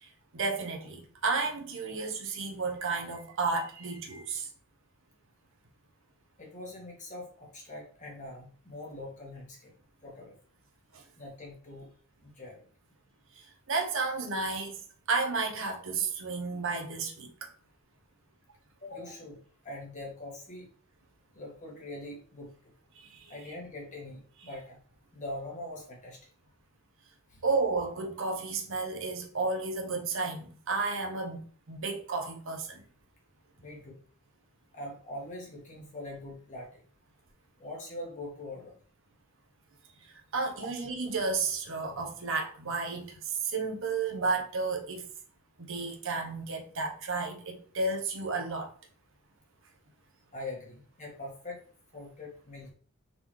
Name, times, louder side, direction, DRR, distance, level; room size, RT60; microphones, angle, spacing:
voice 1, 0.0-4.5 10.9-11.0 13.7-14.8 15.1-17.3 23.0-23.3 27.4-32.8 40.3-45.0 45.6-48.7, right 4 dB, 65° right, 0.9 m, -32 dB
voice 2, 6.4-9.7 10.0-10.3 11.2-11.9 12.2-12.6 18.8-20.7 21.3-22.5 23.3-24.8 25.1-26.2 27.3-27.4 33.6-34.0 34.7-36.8 37.6-38.8 50.3-51.6 51.9-52.7, left 1 dB, 35° left, 1.5 m, -43 dB
3.9 x 3.7 x 3.1 m
head